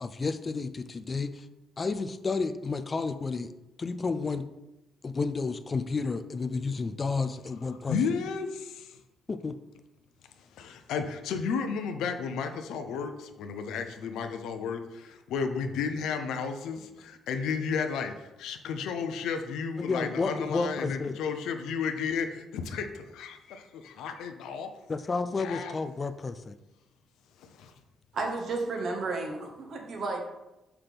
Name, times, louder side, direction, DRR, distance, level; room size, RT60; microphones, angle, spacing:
voice 1, 0.0-1.5 1.8-3.5 3.8-4.4 5.0-8.0 9.3-9.6 19.8-21.1 24.9-26.6, left 4 dB, 30° left, 10 dB, 0.5 m, -31 dB
voice 2, 7.9-9.0 10.6-24.7 25.4-25.7 27.4-27.7, left 6 dB, 85° left, 6 dB, 0.7 m, -33 dB
voice 3, 28.1-30.2, right 3 dB, 60° right, 2 dB, 1.3 m, -32 dB
5.9 x 5.9 x 3.4 m, 0.97 s
cardioid pair, 90°, 0 cm